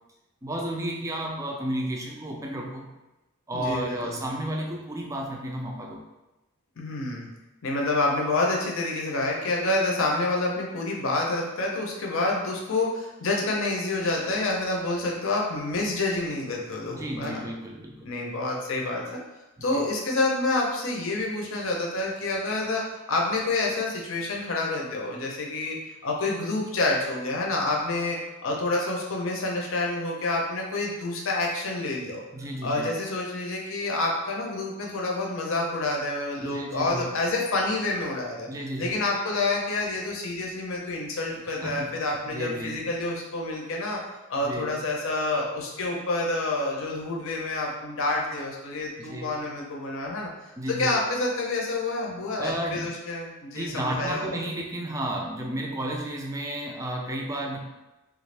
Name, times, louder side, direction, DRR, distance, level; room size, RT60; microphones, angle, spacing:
voice 1, 0.4-2.9 3.5-6.0 16.9-18.1 19.6-19.8 32.3-32.9 36.4-37.1 38.5-39.0 41.5-42.0 42.3-42.9 44.4-44.8 49.0-49.4 50.6-51.0 52.4-52.9 53.5-57.6, right 1 dB, 15° right, 0 dB, 0.3 m, -32 dB
voice 2, 3.5-4.2 6.8-7.3 7.6-17.4 18.0-19.2 19.6-25.8 26.0-32.2 32.6-38.5 38.8-44.0 44.3-50.3 50.7-54.3, left 2 dB, 60° left, -1 dB, 0.6 m, -28 dB
3.4 x 2.5 x 3.2 m, 1.0 s
head